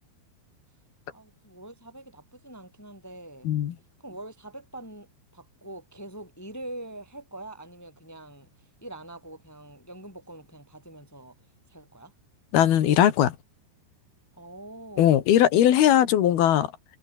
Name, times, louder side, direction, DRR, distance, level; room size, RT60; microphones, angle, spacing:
voice 1, 1.1-3.5 4.0-11.3 11.7-12.1 14.3-15.2, right 1 dB, 5° left, 6.1 m, -44 dB
voice 2, 12.5-13.3 15.0-16.7, left 11 dB, 60° left, 3.3 m, -19 dB
omnidirectional pair, 5.6 m